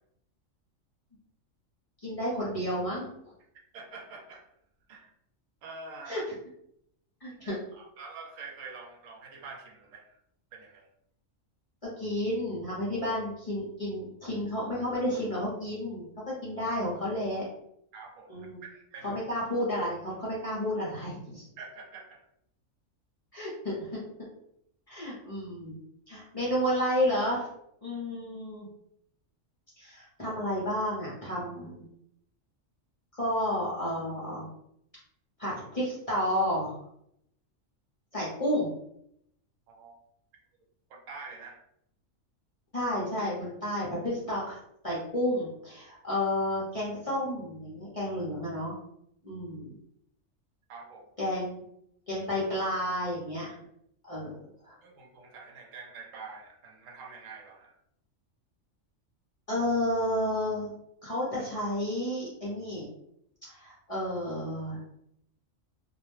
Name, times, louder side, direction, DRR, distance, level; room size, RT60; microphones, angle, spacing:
voice 1, 2.0-3.3 6.1-6.2 7.2-7.5 11.8-17.4 18.3-18.6 19.0-21.5 23.3-24.0 24.9-25.8 26.1-27.5 27.8-28.7 29.8-31.8 33.1-34.5 35.4-36.7 38.1-38.7 42.7-44.6 44.8-48.8 49.2-49.7 51.2-51.6 52.1-53.6 54.0-54.7 59.5-60.7 61.0-62.8 63.4-64.8, left 1 dB, 35° left, -7 dB, 0.6 m, -31 dB
voice 2, 3.7-4.5 4.9-5.1 5.6-6.2 7.4-10.2 10.5-10.9 17.9-19.2 21.6-22.3 39.7-39.9 40.9-41.6 50.7-51.1 54.8-57.8, right 4 dB, 75° right, 1 dB, 0.9 m, -46 dB
2.3 x 2.1 x 3.0 m, 0.75 s
omnidirectional pair, 1.4 m